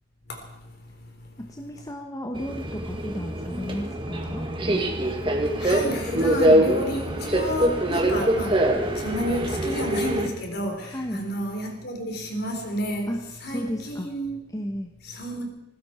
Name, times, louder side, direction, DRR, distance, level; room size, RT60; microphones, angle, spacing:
voice 1, 1.4-4.4 10.9-11.2 13.1-13.2 13.5-14.1 14.5-14.9, equal, 20° left, 2 dB, 1.3 m, -33 dB
Subway metro underground, 2.3-10.3, right 1 dB, 25° right, 1.9 m, -24 dB
voice 2, 5.6-8.6 9.0-14.4 15.0-15.5, equal, 55° left, 3 dB, 3.8 m, -31 dB
19.0 x 16.0 x 4.5 m, 0.90 s
head